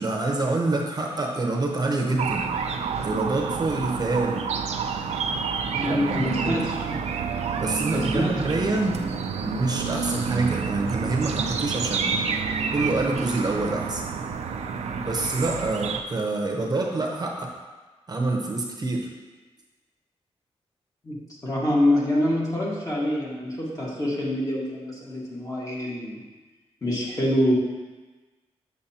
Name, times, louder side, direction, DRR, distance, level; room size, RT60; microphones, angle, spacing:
voice 1, 0.0-2.5 3.0-4.5 5.8-6.6 7.6-9.0 9.4-12.2 12.7-14.0 14.9-17.5 18.1-19.1, right 2 dB, 35° right, 1 dB, 0.8 m, -26 dB
sound 1, 2.2-16.0, right 5 dB, 90° right, 0.4 m, -29 dB
voice 2, 5.7-7.0 7.9-8.4 21.0-26.2 26.8-27.5, left 1 dB, 30° left, -5 dB, 1.7 m, -26 dB
6.7 x 6.6 x 2.8 m, 1.3 s
wide cardioid pair, 105°, 11 cm